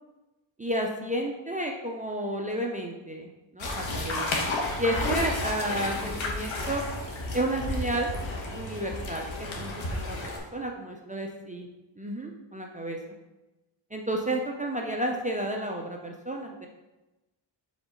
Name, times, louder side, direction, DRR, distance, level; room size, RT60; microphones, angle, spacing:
voice 1, 0.6-3.3 3.5-4.2 4.8-6.8 7.3-8.1 8.5-11.7 12.0-13.0 13.9-16.7, right 1 dB, 15° right, 1 dB, 0.4 m, -31 dB
sound 1, 3.6-10.4, left 2 dB, 75° left, 1.3 m, -32 dB
5.1 x 3.7 x 5.0 m, 1.0 s
wide cardioid pair, 160°, 47 cm